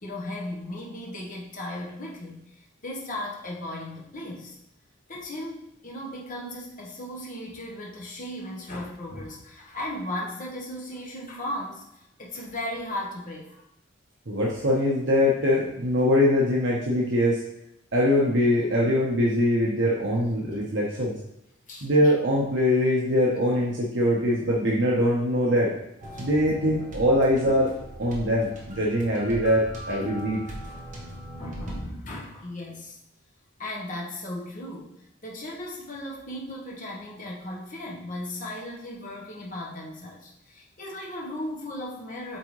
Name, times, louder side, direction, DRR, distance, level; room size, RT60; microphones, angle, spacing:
voice 1, 0.0-4.6 5.1-11.8 12.2-13.6 21.7-22.1 26.1-26.3 29.9-30.0 30.9-31.0 31.4-33.0 33.6-42.4, left 1 dB, 40° left, -3 dB, 1.2 m, -36 dB
voice 2, 14.3-17.4 17.9-21.1 21.8-25.7 26.2-27.7 28.0-30.4, left 1 dB, 65° right, -4 dB, 1.0 m, -22 dB
sound 1, 26.0-31.8, equal, 40° right, 1.2 m, -40 dB
8.3 x 3.6 x 3.2 m, 0.81 s
head